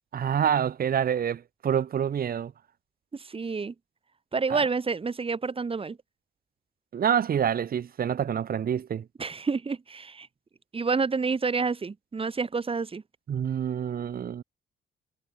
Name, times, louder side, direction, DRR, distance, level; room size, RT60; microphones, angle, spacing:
voice 1, 0.1-2.5 4.5-4.6 6.9-9.0 13.3-14.4, right 8 dB, 50° right, 1.1 m, -27 dB
voice 2, 3.1-3.7 4.3-6.0 9.2-10.3 10.7-13.0, right 4 dB, 30° right, 1.6 m, -29 dB
cardioid pair, 90°, 20 cm